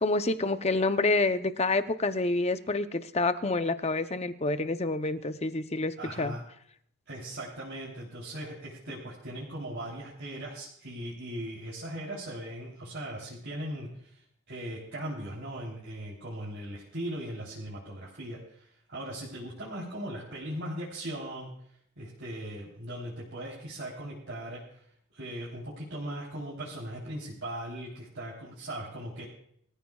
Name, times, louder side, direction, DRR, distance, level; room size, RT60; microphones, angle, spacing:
voice 1, 0.0-6.4, left 2 dB, 30° left, 10 dB, 0.7 m, -28 dB
voice 2, 6.0-6.4 7.1-21.5 22.0-24.8 25.1-29.2, right 1 dB, 55° right, -5 dB, 3.5 m, -39 dB
22.5 x 14.5 x 2.4 m, 0.66 s
head